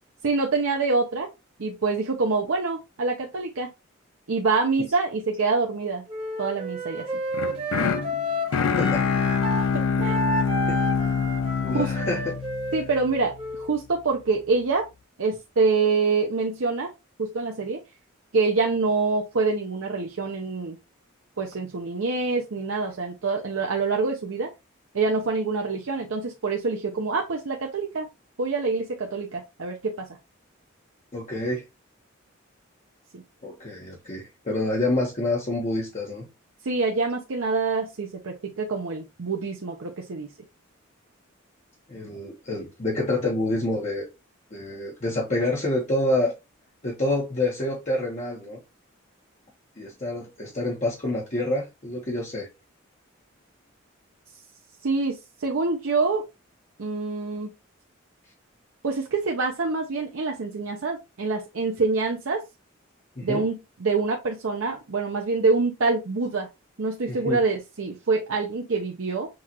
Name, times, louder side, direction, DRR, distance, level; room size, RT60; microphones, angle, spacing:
voice 1, 0.2-1.3 1.6-3.7 4.3-6.0 6.4-7.1 9.6-9.7 10.0-10.1 11.7-11.9 12.7-13.3 13.6-14.8 15.2-16.9 17.2-17.8 18.3-20.8 21.4-24.5 24.9-28.1 28.4-30.1 33.1-33.2 36.6-40.3 54.8-56.2 56.8-57.5 58.8-62.4 63.2-63.6 63.8-66.5 66.8-69.3, right 4 dB, 80° right, 0.7 m, -26 dB
Wind instrument woodwind instrument, 6.1-9.7 10.0-13.7, right 1 dB, 25° right, 1.2 m, -31 dB
sound 1, 7.3-13.4, left 6 dB, 80° left, 0.4 m, -25 dB
voice 2, 11.6-12.3 31.1-31.6 33.4-36.3 41.9-44.1 44.5-46.3 46.8-48.6 49.8-52.5 63.2-63.4 67.1-67.4, left 2 dB, 35° left, 1.0 m, -27 dB
6.3 x 2.4 x 2.9 m
head